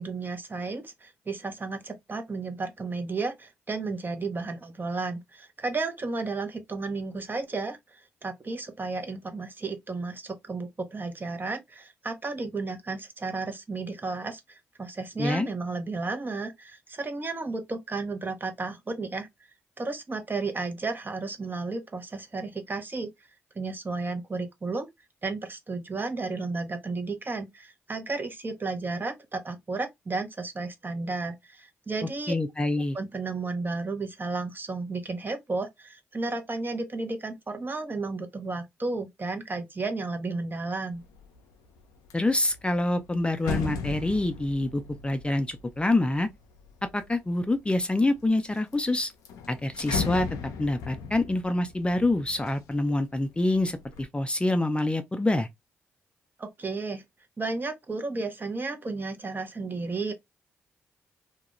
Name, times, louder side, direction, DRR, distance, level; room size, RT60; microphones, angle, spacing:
voice 1, 0.0-19.3 19.8-23.1 23.5-24.9 25.2-32.3 32.9-41.0 56.4-57.0 57.4-60.1, right 3 dB, 35° right, 0.7 m, -33 dB
voice 2, 32.3-33.0 42.1-46.3 46.9-49.1 49.5-50.3 50.6-55.5, left 2 dB, 15° left, 0.5 m, -26 dB
sound 1, 41.0-41.4 41.8-47.1 47.7-48.4 48.7-48.8 49.1-53.0 53.4-54.0, left 5 dB, 75° left, 0.4 m, -36 dB
2.4 x 2.2 x 2.9 m
hypercardioid pair, 40°, 6 cm